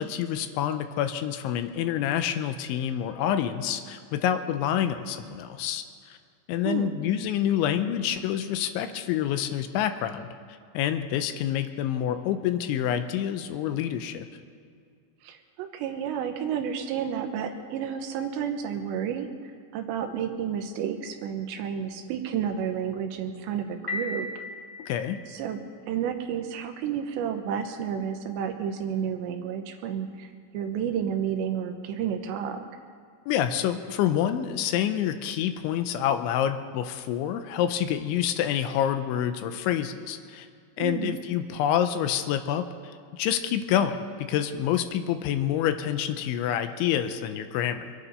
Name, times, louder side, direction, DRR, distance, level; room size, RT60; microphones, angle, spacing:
voice 1, 0.0-6.2 6.5-10.3 10.7-14.3 24.8-25.2 33.3-40.5 40.8-47.9, left 10 dB, 85° left, 9 dB, 3.0 m, -27 dB
voice 2, 15.2-24.5 25.3-25.6 25.9-30.3 30.5-32.7 40.8-41.2, right 8 dB, 75° right, 5 dB, 3.0 m, -31 dB
Piano, 23.9-25.8, left 2 dB, 20° left, 0.5 m, -37 dB
25.0 x 9.9 x 5.5 m, 2.2 s
omnidirectional pair, 5.4 m